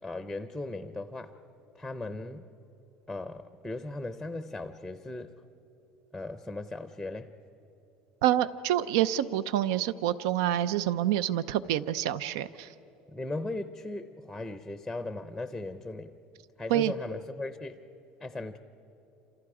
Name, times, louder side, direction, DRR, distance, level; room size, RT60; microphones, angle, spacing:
voice 1, 0.0-1.4 1.7-2.4 3.1-5.3 6.1-7.3 13.1-16.2 16.6-17.8 18.2-18.6, left 2 dB, ahead, 10 dB, 0.6 m, -37 dB
voice 2, 8.2-12.7 16.7-16.9, right 12 dB, 90° right, 16 dB, 0.6 m, -27 dB
28.5 x 27.5 x 4.9 m, 3.0 s
cardioid pair, 165°, 2 cm